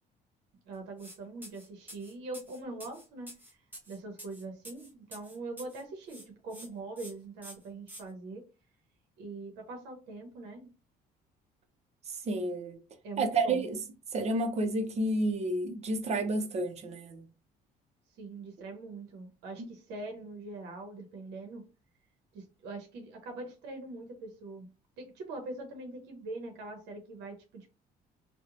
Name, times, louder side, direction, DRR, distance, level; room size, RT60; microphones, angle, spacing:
voice 1, 0.7-3.6 3.9-8.5 9.2-10.7 13.0-13.6 18.2-21.6 22.3-24.7 25.0-27.7, right 2 dB, 85° right, 0.7 m, -43 dB
sound 1, 1.0-1.2 1.4-5.8 6.1-6.7 7.0-7.1 7.4-8.0, equal, 10° right, 1.0 m, -48 dB
voice 2, 12.3-12.8 13.2-13.8 14.1-17.3, right 2 dB, 40° right, 0.6 m, -30 dB
2.9 x 2.1 x 2.4 m
cardioid pair, 110°, 17 cm